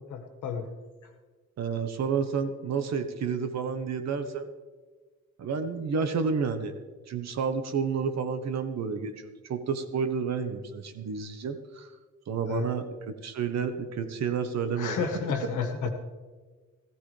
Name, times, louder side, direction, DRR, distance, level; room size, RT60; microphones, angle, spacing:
voice 1, 0.1-0.6 12.5-12.7 14.8-15.9, left 6 dB, 80° left, 5 dB, 1.7 m, -31 dB
voice 2, 1.6-4.5 5.4-11.9 12.3-15.0, right 6 dB, 60° right, 8 dB, 1.2 m, -30 dB
15.0 x 15.0 x 3.4 m, 1.4 s
cardioid pair, 90°, 30 cm